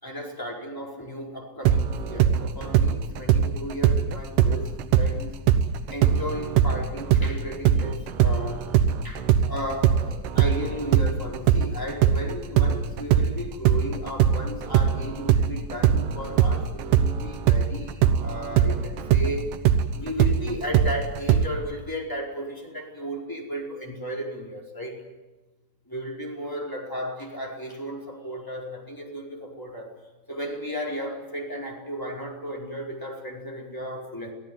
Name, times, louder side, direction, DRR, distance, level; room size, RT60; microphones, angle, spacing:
voice 1, 0.0-5.4 5.9-8.7 9.0-19.5 19.9-25.0 25.9-29.9 30.3-34.3, equal, 5° left, -2 dB, 4.6 m, -34 dB
sound 1, 1.7-5.2 5.5-13.3 13.6-21.5, right 9 dB, 85° right, 2.8 m, -21 dB
25.0 x 16.0 x 9.6 m, 1.1 s
omnidirectional pair, 3.8 m